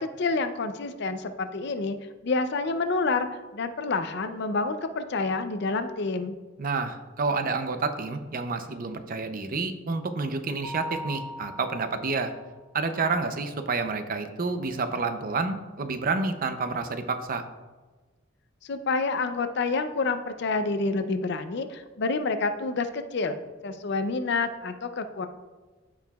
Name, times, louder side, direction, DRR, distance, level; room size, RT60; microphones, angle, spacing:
voice 1, 0.0-2.0 2.2-6.4 18.6-23.4 23.6-25.3, left 3 dB, 60° left, 9 dB, 0.5 m, -28 dB
voice 2, 6.6-12.3 12.7-17.4, right 4 dB, 45° right, 9 dB, 0.6 m, -29 dB
Mallet percussion, 10.6-12.4, equal, 5° left, 1.8 m, -39 dB
14.0 x 4.7 x 2.3 m, 1.3 s
head